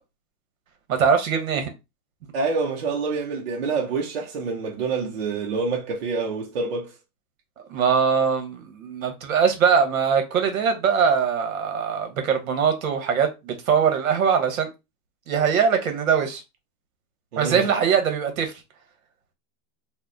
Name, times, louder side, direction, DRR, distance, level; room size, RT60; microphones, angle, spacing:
voice 1, 0.9-1.7 7.7-14.7 15.3-16.4 17.4-18.5, right 6 dB, 60° right, 1.0 m, -22 dB
voice 2, 2.3-6.9 17.3-17.7, right 4 dB, 45° right, 0.6 m, -27 dB
2.8 x 2.1 x 3.6 m
supercardioid pair, 175°, 45 cm